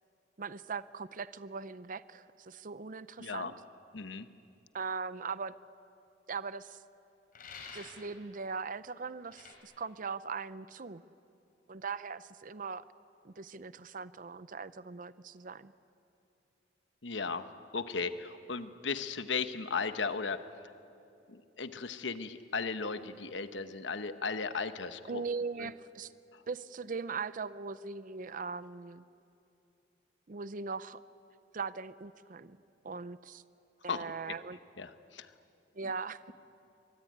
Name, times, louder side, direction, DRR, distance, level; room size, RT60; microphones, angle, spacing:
voice 1, 0.4-3.6 4.7-5.5 6.3-6.8 7.7-11.0 11.7-12.8 13.2-15.7 25.1-26.1 26.5-29.0 30.3-31.0 31.5-32.6 32.8-33.4 33.8-34.6 35.8-36.3, right 5 dB, 45° right, 15 dB, 0.6 m, -40 dB
voice 2, 3.2-3.5 3.9-4.3 17.0-17.4 17.7-20.4 21.3-25.2 25.6-25.7 33.9-34.0 34.8-35.3, left 4 dB, 75° left, 10 dB, 1.1 m, -36 dB
sound 1, 7.3-8.1 9.3-9.5, left 5 dB, 50° left, 4.5 m, -48 dB
24.0 x 24.0 x 9.4 m, 2.7 s
head